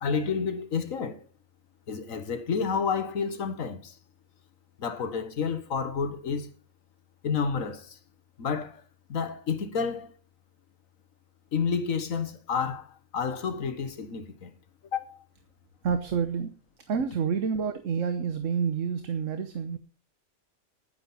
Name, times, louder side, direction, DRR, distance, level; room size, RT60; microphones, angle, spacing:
voice 1, 0.0-1.3 1.9-4.0 4.8-6.5 7.2-8.0 8.4-8.8 9.1-10.1 11.5-14.5 14.9-15.2, left 6 dB, 85° left, 1.6 m, -30 dB
voice 2, 15.8-16.5 16.9-19.8, right 6 dB, 75° right, 1.4 m, -28 dB
10.5 x 9.9 x 5.5 m
omnidirectional pair, 1.4 m